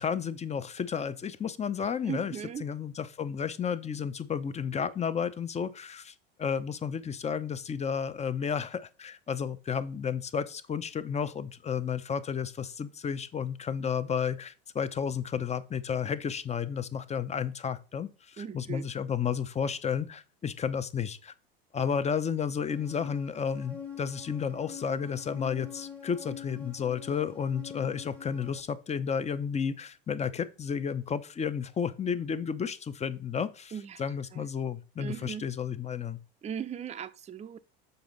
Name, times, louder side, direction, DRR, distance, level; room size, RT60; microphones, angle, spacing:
voice 1, 0.0-2.3 2.6-21.3 21.7-33.7 34.0-36.2, left 7 dB, 20° left, 0.6 m, -32 dB
voice 2, 2.1-2.7 18.4-18.9 33.7-34.0 34.3-34.5 35.0-35.5 36.4-37.6, right 8 dB, 20° right, 0.6 m, -38 dB
sound 1, 22.7-28.6, left 6 dB, 5° left, 1.0 m, -45 dB
6.9 x 5.1 x 3.9 m
hypercardioid pair, 85°, 31 cm